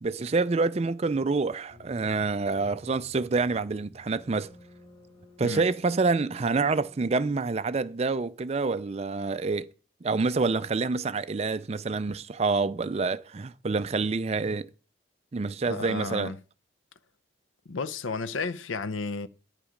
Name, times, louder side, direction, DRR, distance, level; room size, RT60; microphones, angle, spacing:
voice 1, 0.0-4.5 5.4-9.7 10.0-14.7 15.3-16.3, right 4 dB, 30° right, 0.4 m, -27 dB
sound 1, 1.7-7.3, left 2 dB, 30° left, 4.1 m, -54 dB
voice 2, 15.7-16.4 17.7-19.3, left 4 dB, 85° left, 0.7 m, -32 dB
10.0 x 8.9 x 5.1 m
head